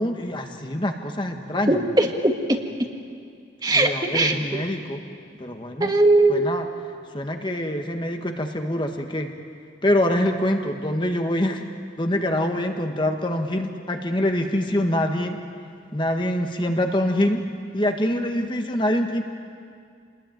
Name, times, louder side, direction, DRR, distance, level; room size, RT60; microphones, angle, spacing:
voice 1, 0.0-1.8 3.7-5.0 5.4-5.9 6.3-6.7 7.1-9.3 9.8-11.6 12.0-15.4 15.9-17.4 17.7-19.2, left 1 dB, 25° left, 4 dB, 1.6 m, -25 dB
voice 2, 1.7-2.6 3.6-4.4 5.8-6.5, right 2 dB, 20° right, 4 dB, 1.5 m, -19 dB
28.0 x 20.5 x 9.4 m, 2.2 s
head